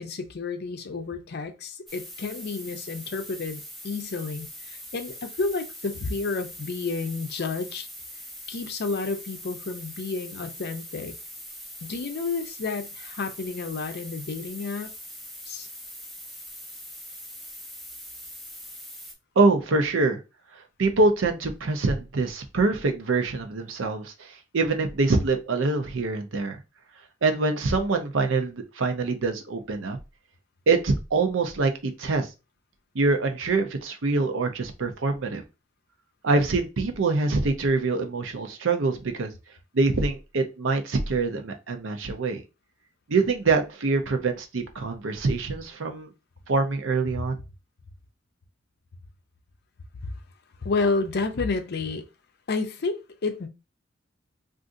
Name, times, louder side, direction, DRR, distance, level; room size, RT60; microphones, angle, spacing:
voice 1, 0.0-7.9 8.5-11.1 11.9-14.9 15.5-15.7 50.0-50.1 50.6-52.0 52.5-53.5, left 3 dB, 55° left, 0.5 m, -30 dB
sound 1, 1.9-19.1, equal, ahead, 0.6 m, -42 dB
voice 2, 19.4-20.2 20.8-26.6 27.2-30.0 30.7-32.3 32.9-35.4 36.2-39.3 39.7-42.4 43.1-46.1 46.5-47.4, right 3 dB, 75° right, 0.6 m, -24 dB
3.7 x 2.5 x 2.5 m
head